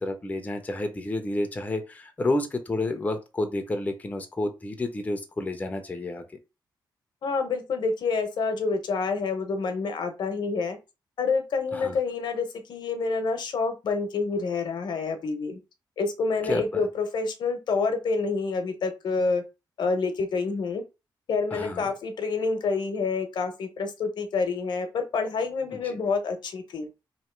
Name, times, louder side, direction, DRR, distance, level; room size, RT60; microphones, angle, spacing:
voice 1, 0.0-6.2 11.7-12.0 16.4-16.8 21.5-21.9 25.8-26.0, left 2 dB, 20° left, 5 dB, 0.5 m, -30 dB
voice 2, 7.2-10.8 11.2-15.6 16.0-19.4 19.8-20.8 21.3-26.9, left 4 dB, 70° left, 7 dB, 0.8 m, -28 dB
3.0 x 2.7 x 4.4 m, 0.27 s
wide cardioid pair, 150°, 8 cm